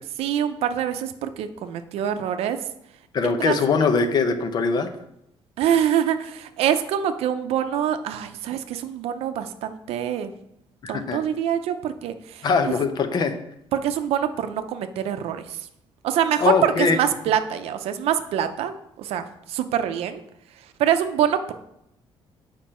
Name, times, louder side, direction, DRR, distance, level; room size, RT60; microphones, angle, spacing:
voice 1, 0.2-2.6 3.2-3.6 5.6-10.3 10.9-12.7 13.7-15.7 16.0-20.2 20.8-21.5, right 9 dB, 85° right, 9 dB, 0.6 m, -25 dB
voice 2, 3.1-4.9 10.8-11.2 12.4-13.4 16.4-17.0, left 5 dB, 45° left, 9 dB, 0.7 m, -21 dB
7.2 x 5.1 x 4.3 m, 0.80 s
cardioid pair, 145°, 10 cm